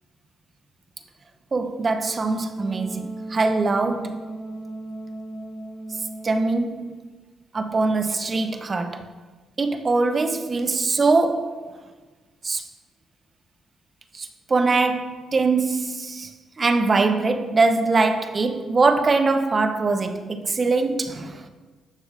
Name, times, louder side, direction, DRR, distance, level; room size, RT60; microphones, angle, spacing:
voice 1, 1.5-4.2 6.2-7.0 7.5-9.1 9.6-11.7 12.4-12.6 14.1-16.3 16.6-21.5, right 3 dB, 35° right, 0.8 m, -22 dB
Wind instrument woodwind instrument, 2.0-6.8, right 2 dB, 85° left, 2.5 m, -35 dB
11.0 x 6.8 x 3.7 m
cardioid pair, 90°, 0 cm